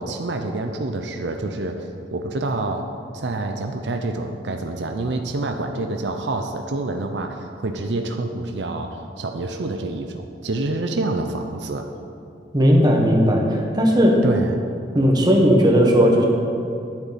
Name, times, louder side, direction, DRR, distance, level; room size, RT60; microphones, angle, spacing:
voice 1, 0.0-2.9 3.1-11.9 14.2-14.6, right 2 dB, 75° right, 5 dB, 0.7 m, -27 dB
voice 2, 12.5-14.2 14.9-16.2, equal, 25° right, -1 dB, 1.5 m, -16 dB
12.0 x 10.0 x 4.3 m, 2.6 s
head